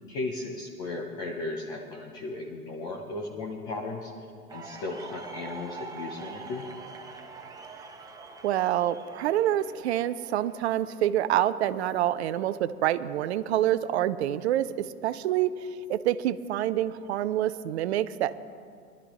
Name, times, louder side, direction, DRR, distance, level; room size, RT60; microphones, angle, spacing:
voice 1, 0.1-4.1 4.5-6.7, left 2 dB, 10° left, 0 dB, 0.3 m, -36 dB
sound 1, 4.5-11.0, right 4 dB, 10° right, 0.9 m, -44 dB
voice 2, 8.4-18.3, right 12 dB, 50° right, 14 dB, 0.6 m, -27 dB
23.5 x 12.0 x 3.0 m, 2.2 s
figure-of-eight pair, 105°, 45 cm